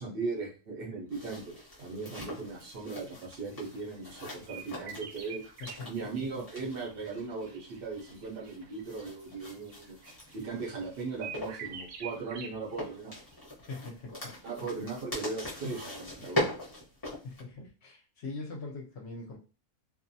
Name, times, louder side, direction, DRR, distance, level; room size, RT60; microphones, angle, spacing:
voice 1, 0.0-5.4 5.9-10.0 10.3-13.1 14.4-16.5, right 4 dB, 55° right, 0 dB, 0.7 m, -38 dB
sound 1, 1.1-17.4, equal, 20° left, 0.7 m, -41 dB
sound 2, 3.5-5.8 6.5-12.9 13.2-13.3, right 7 dB, 75° right, 1.0 m, -47 dB
voice 2, 5.6-5.9 13.7-14.3 17.2-19.4, left 3 dB, 60° left, -1 dB, 0.8 m, -42 dB
2.5 x 2.1 x 2.6 m, 0.34 s
omnidirectional pair, 1.5 m